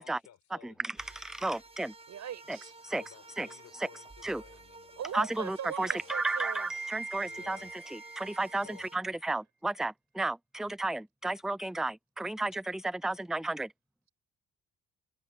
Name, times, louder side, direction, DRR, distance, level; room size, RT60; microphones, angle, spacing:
voice 1, 0.0-0.8 2.9-5.2 5.9-6.1 7.2-7.8 8.6-8.9, left 10 dB, 70° left, 5.3 m, -56 dB
voice 2, 0.6-1.9 2.5-2.6 2.8-3.0 3.4-3.5 3.7-3.9 4.2-4.4 5.1-13.7, right 2 dB, ahead, 0.3 m, -33 dB
sound 1, 1.0-9.0, right 2 dB, 20° right, 6.8 m, -52 dB
voice 3, 2.1-2.7 5.0-6.7, right 10 dB, 65° right, 7.9 m, -40 dB
cardioid pair, 90°, 30 cm